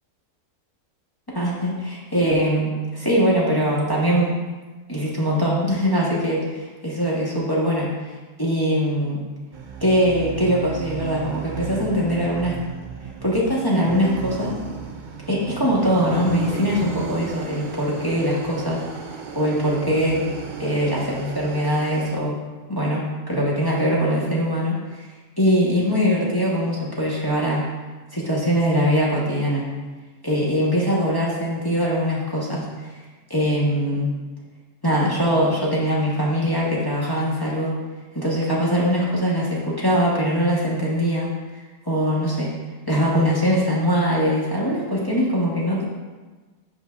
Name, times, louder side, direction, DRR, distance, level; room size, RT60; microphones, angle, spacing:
voice 1, 1.3-4.3 4.9-7.9 8.4-9.2 9.8-12.6 13.2-14.6 15.3-18.8 19.3-20.2 20.6-22.4 22.7-25.1 25.4-27.6 28.1-29.6 30.2-33.0 33.3-34.1 34.8-37.7 38.1-41.3 41.8-42.5 42.9-45.8, equal, 20° left, -6 dB, 0.9 m, -22 dB
sound 1, 9.5-22.2, right 6 dB, 75° right, 0.4 m, -34 dB
8.0 x 5.6 x 2.4 m, 1.3 s
omnidirectional pair, 1.5 m